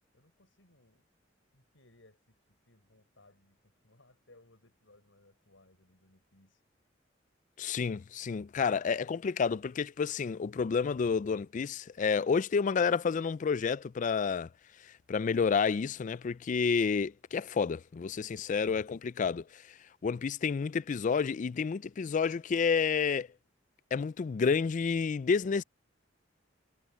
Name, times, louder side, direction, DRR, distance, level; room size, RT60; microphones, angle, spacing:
voice 1, 0.1-1.0 1.5-6.6, left 2 dB, 85° left, 6.9 m, -64 dB
voice 2, 7.6-14.5 14.8-19.8 20.0-23.3 23.9-25.6, left 5 dB, 40° left, 0.3 m, -30 dB
head